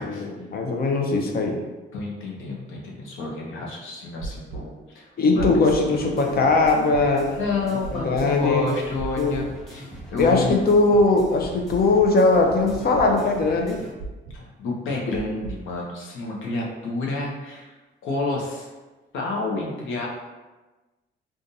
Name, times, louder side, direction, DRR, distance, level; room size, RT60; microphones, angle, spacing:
voice 1, 0.0-1.6 5.2-7.3 7.9-8.7 9.2-9.4 10.2-13.8, left 3 dB, 50° left, 2 dB, 0.7 m, -20 dB
voice 2, 1.9-5.5 7.4-10.6 14.3-17.7 18.0-18.7 19.1-20.1, left 3 dB, 85° left, -2 dB, 0.9 m, -29 dB
sound 1, 4.2-4.6 5.4-5.8 6.6-7.0 7.8-8.2 9.0-9.4 10.2-10.6 11.4-11.8 12.7-13.1 14.0-14.4 15.1-15.6, right 4 dB, 90° right, 0.4 m, -34 dB
sound 2, 5.9-13.9, right 1 dB, ahead, 0.7 m, -42 dB
3.8 x 2.5 x 2.7 m, 1.2 s
cardioid pair, 90°, 20 cm